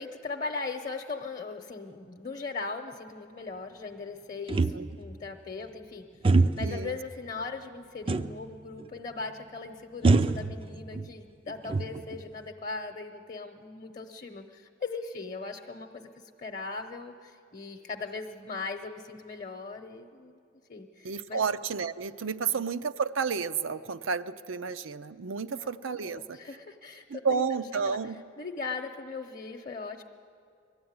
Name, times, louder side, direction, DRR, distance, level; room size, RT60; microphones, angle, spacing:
voice 1, 0.0-20.4 20.7-21.4 22.4-22.6 25.5-27.4 27.7-28.0 28.4-30.0, left 4 dB, 40° left, 4 dB, 0.9 m, -39 dB
sound 1, 4.5-5.2 6.2-6.8 8.1-8.5 8.8-8.9 10.0-11.1 11.5-12.3, right 3 dB, 25° right, 0.4 m, -25 dB
voice 2, 6.6-7.0 21.0-26.4 27.1-28.2, right 5 dB, 75° right, 13 dB, 0.6 m, -31 dB
20.5 x 13.5 x 9.5 m, 2.4 s
head